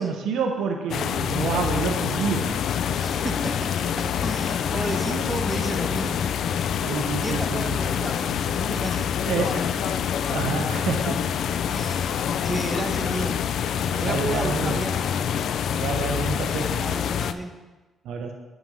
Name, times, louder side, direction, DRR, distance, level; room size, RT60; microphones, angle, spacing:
voice 1, 0.0-2.6 6.8-7.8 9.3-9.6 10.3-11.3 11.8-12.3 14.0-14.8 15.7-16.8 18.0-18.3, right 5 dB, 80° right, 2 dB, 1.0 m, -28 dB
sound 1, 0.9-17.3, left 8 dB, 70° left, 0.4 m, -26 dB
voice 2, 3.0-6.2 7.2-10.1 11.6-12.2 12.4-13.4 13.9-15.3 16.6-17.5, right 1 dB, 15° right, 4 dB, 1.2 m, -33 dB
9.2 x 5.3 x 5.4 m, 1.2 s
cardioid pair, 90°, 0 cm